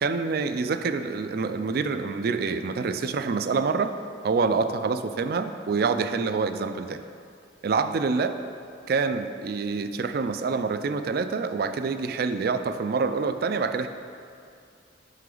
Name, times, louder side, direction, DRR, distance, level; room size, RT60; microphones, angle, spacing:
voice 1, 0.0-3.9 4.2-7.0 7.6-8.3 8.9-13.9, right 4 dB, 55° right, 9 dB, 0.3 m, -26 dB
7.7 x 5.8 x 3.9 m, 2.4 s
head